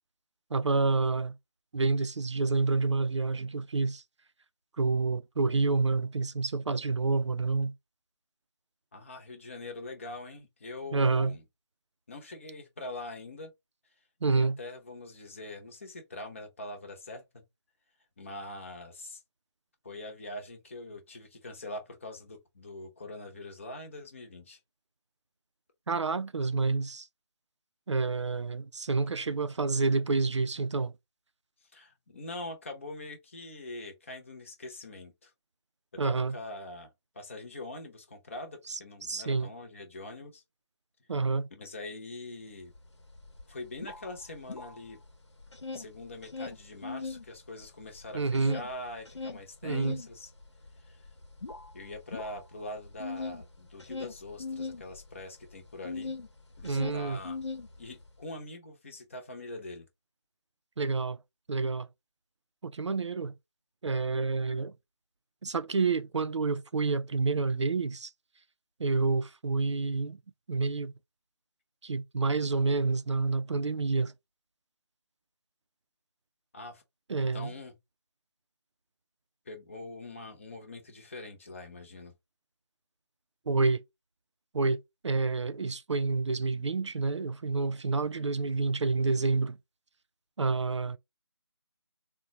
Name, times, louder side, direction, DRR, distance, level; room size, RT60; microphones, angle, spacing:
voice 1, 0.5-1.4 1.7-4.0 4.8-7.7 10.9-11.3 14.2-14.6 25.9-27.1 27.9-30.9 36.0-36.4 39.0-39.5 41.1-41.5 48.1-48.6 49.6-50.0 56.6-57.2 60.8-61.2 61.5-61.9 62.6-63.3 63.8-64.7 65.4-68.1 68.8-70.2 70.5-70.9 71.8-74.1 77.1-77.5 83.5-83.8 84.5-89.6 90.4-91.0, right 3 dB, 85° right, 0.4 m, -28 dB
voice 2, 8.9-11.4 12.1-13.5 14.3-17.4 18.2-19.2 19.8-24.6 31.7-35.3 35.9-40.4 41.5-42.7 43.5-45.0 45.7-50.3 50.8-51.1 51.7-56.1 56.6-57.4 57.8-59.9 76.5-76.8 77.2-77.8 79.5-82.1, left 2 dB, 30° left, 0.8 m, -43 dB
sound 1, 42.8-42.9 43.1-45.1 45.4-47.3 47.6-56.3 56.6-58.1, left 4 dB, 80° left, 0.9 m, -39 dB
3.7 x 2.2 x 2.7 m
figure-of-eight pair, 165°, 15 cm